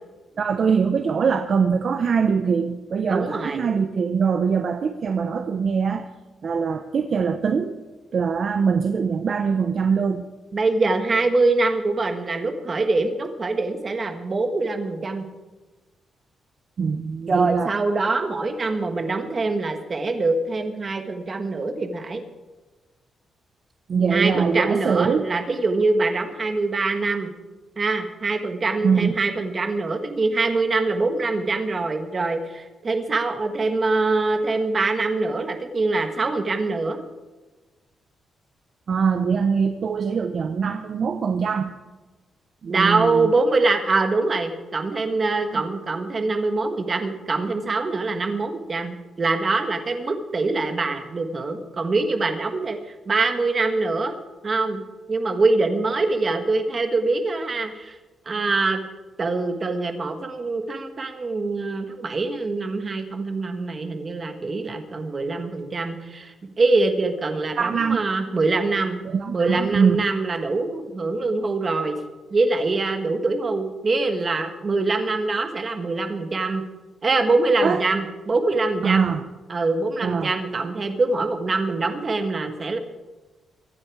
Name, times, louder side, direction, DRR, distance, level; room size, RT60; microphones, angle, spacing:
voice 1, 0.4-6.1 6.4-7.8 8.1-10.3 16.8-17.7 23.9-25.3 28.8-29.2 38.9-41.7 42.6-43.3 45.5-45.6 67.6-68.0 69.0-70.0 77.6-77.8 78.8-79.3 80.0-80.3, right 6 dB, 45° right, 7 dB, 0.7 m, -22 dB
voice 2, 3.1-3.7 10.5-15.2 17.3-22.2 24.1-27.3 27.8-37.0 42.7-52.8 53.1-54.1 54.4-54.8 55.1-58.0 58.2-58.8 59.2-69.0 69.3-72.0 72.3-76.6 77.0-79.1 79.5-82.8, right 3 dB, 25° right, 6 dB, 1.5 m, -24 dB
23.5 x 9.7 x 4.8 m, 1.2 s
wide cardioid pair, 175°, 0 cm